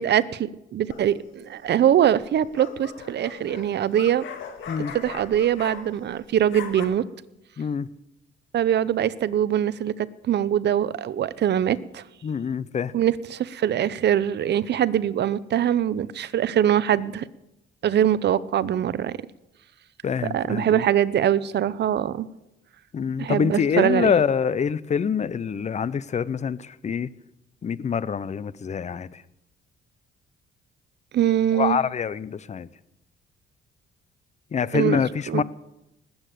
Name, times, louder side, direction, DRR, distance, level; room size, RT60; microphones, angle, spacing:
voice 1, 0.0-4.2 4.9-7.0 8.5-12.0 12.9-17.2 17.8-19.1 20.3-22.3 23.2-24.1 31.1-31.8 34.7-35.0 35.3-35.4, right 10 dB, 60° right, 0.7 m, -23 dB
sound 1, 0.9-1.3 2.2-6.1 6.4-6.8, left 7 dB, 75° left, 2.1 m, -39 dB
voice 2, 7.6-7.9 12.2-12.9 20.0-20.8 22.9-27.1 27.6-29.2 31.5-32.7 34.5-35.4, left 7 dB, 35° left, 0.7 m, -25 dB
20.0 x 8.8 x 6.7 m
cardioid pair, 90°, 20 cm